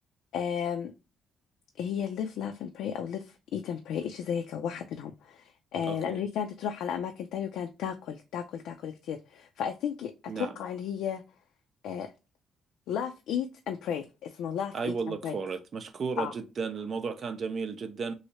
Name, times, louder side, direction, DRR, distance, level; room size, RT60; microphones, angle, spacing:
voice 1, 0.3-0.9 1.8-11.2 11.8-12.1 12.9-15.4 16.2-16.3, left 8 dB, 85° left, 0.4 m, -34 dB
voice 2, 5.8-6.2 10.3-10.6 14.7-18.1, right 5 dB, 50° right, 0.6 m, -34 dB
3.1 x 2.7 x 2.8 m
cardioid pair, 90°, 0 cm